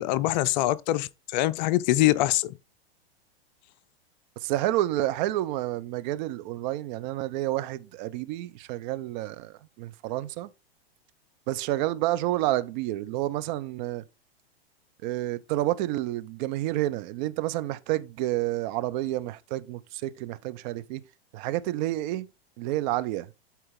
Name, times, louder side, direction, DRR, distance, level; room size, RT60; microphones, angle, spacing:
voice 1, 0.0-2.5, left 16 dB, 45° left, 0.6 m, -24 dB
voice 2, 4.4-10.5 11.5-14.0 15.0-21.0 21.3-22.3 22.6-23.3, right 15 dB, 45° right, 0.9 m, -29 dB
11.5 x 4.5 x 3.7 m
hypercardioid pair, 115°, 31 cm